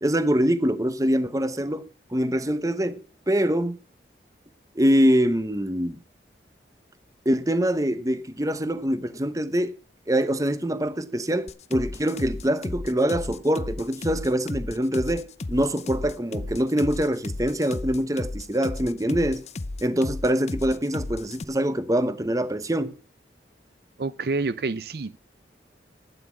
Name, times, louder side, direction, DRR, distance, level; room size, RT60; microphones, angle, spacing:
voice 1, 0.0-3.8 4.7-6.0 7.2-9.8 10.1-19.4 19.8-22.9, equal, 20° right, 1.0 m, -24 dB
sound 1, 11.5-21.4, left 2 dB, 40° left, 0.6 m, -34 dB
voice 2, 24.0-25.2, right 3 dB, 60° right, 0.5 m, -28 dB
12.5 x 9.6 x 6.1 m
head